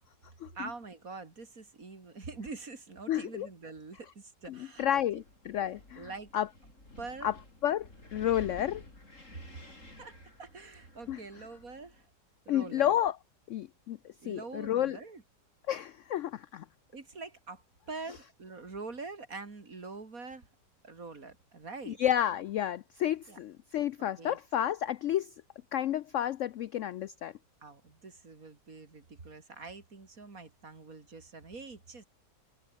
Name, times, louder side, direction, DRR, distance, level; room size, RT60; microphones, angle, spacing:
voice 1, 0.6-5.0 5.7-6.3 7.0-7.3 10.0-12.1 12.5-13.0 14.2-15.2 16.9-20.5 20.8-22.0 23.3-23.4 24.2-24.4 27.6-32.1, right 3 dB, 50° right, 3.5 m, -45 dB
voice 2, 3.1-3.5 4.5-6.5 7.2-7.3 7.6-8.8 11.1-11.2 12.5-13.2 13.5-15.0 15.7-16.7 21.9-25.3 25.7-27.3, left 11 dB, 85° left, 0.6 m, -31 dB
Wind, 4.7-12.1, left 2 dB, 45° left, 7.1 m, -52 dB
omnidirectional pair, 1.9 m